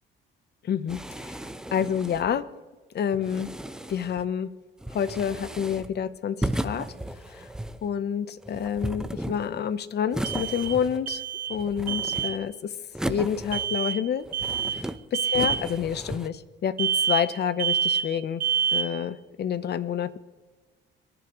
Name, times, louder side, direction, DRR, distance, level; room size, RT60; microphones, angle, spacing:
voice 1, 0.6-1.4 1.7-2.4 2.9-3.5 3.9-4.5 4.9-6.9 7.3-7.5 7.8-11.2 11.5-12.7 13.1-14.2 14.7-18.4 18.7-20.2, left 8 dB, 55° left, 15 dB, 0.9 m, -28 dB
sound 1, 0.9-2.4 3.1-4.3 4.8-6.0 6.4-7.9 8.4-9.6 10.1-11.2 11.5-12.5 12.9-13.9 14.2-15.0 15.3-16.3, right 1 dB, 5° right, 0.8 m, -35 dB
sound 2, 7.0-7.1 10.2-11.6 11.9-12.4 13.5-14.0 14.3-14.8 15.1-15.6 16.8-17.3 17.6-18.1 18.4-19.0, right 8 dB, 45° right, 1.6 m, -27 dB
23.5 x 11.0 x 3.1 m, 1.3 s
cardioid pair, 90°, 20 cm